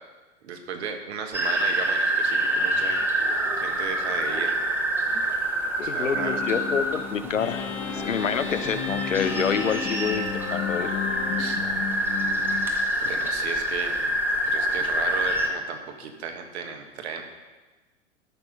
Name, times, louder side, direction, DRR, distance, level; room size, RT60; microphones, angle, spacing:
voice 1, 0.4-3.0 3.6-4.6 5.9-6.5 11.4-11.6 13.0-14.1 14.4-17.2, right 6 dB, 60° right, 4 dB, 1.6 m, -34 dB
sound 1, 1.3-15.5, right 1 dB, 5° right, 1.1 m, -27 dB
voice 2, 5.8-11.0, left 6 dB, 85° left, 11 dB, 0.7 m, -28 dB
sound 2, 6.1-12.7, left 9 dB, 35° left, 1.2 m, -34 dB
sound 3, 7.4-11.6, left 4 dB, 60° left, 1.0 m, -36 dB
12.0 x 6.1 x 5.2 m, 1.2 s
figure-of-eight pair, 90°, 38 cm